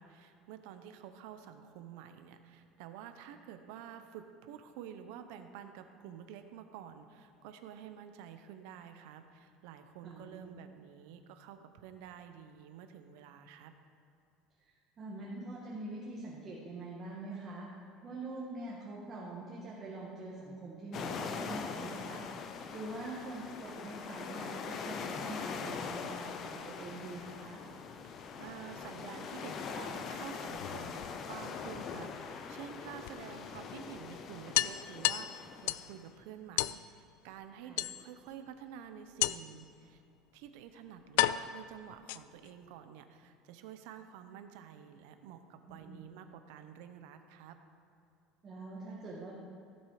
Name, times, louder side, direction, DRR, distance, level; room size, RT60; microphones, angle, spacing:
voice 1, 0.0-13.7 28.4-40.0 40.3-47.6, right 9 dB, 70° right, 8 dB, 0.9 m, -49 dB
voice 2, 10.0-10.5 15.0-17.7 18.0-27.6 37.6-37.8 45.7-46.0 48.4-49.3, right 2 dB, 25° right, -5 dB, 1.7 m, -44 dB
sound 1, 20.9-36.0, left 5 dB, 30° left, 0.7 m, -42 dB
sound 2, 30.5-31.6 33.1-33.2 33.5-33.6 33.9-34.0 34.5-35.9 36.6-36.8 37.8-38.3 39.2-39.6 40.5-40.6 41.2-42.5, left 16 dB, 75° left, 0.3 m, -32 dB
16.0 x 7.3 x 5.0 m, 2.6 s
cardioid pair, 165°, 0 cm